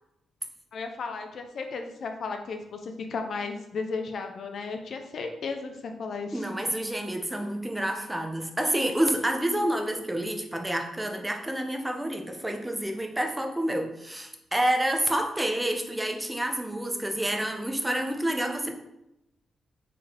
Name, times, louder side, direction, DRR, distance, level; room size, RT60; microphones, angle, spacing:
voice 1, 0.7-6.5, left 4 dB, 65° left, 5 dB, 0.4 m, -34 dB
voice 2, 6.3-18.7, right 1 dB, 15° right, 3 dB, 0.7 m, -28 dB
3.8 x 3.4 x 2.9 m, 0.89 s
hypercardioid pair, 40°, 0 cm